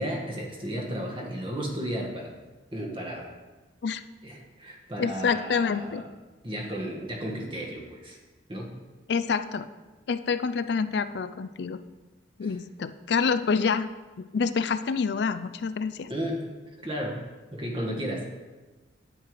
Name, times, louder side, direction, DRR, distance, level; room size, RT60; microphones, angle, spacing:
voice 1, 0.0-2.3 2.7-3.3 4.2-6.0 6.4-8.2 8.5-8.7 12.4-12.5 16.1-16.5 16.8-17.2 17.5-18.3, equal, 25° right, 0 dB, 1.5 m, -33 dB
voice 2, 5.0-6.0 9.1-9.7 10.1-11.8 12.4-13.9 14.2-16.1, left 5 dB, 60° left, 11 dB, 0.4 m, -27 dB
9.4 x 8.8 x 4.8 m, 1.2 s
head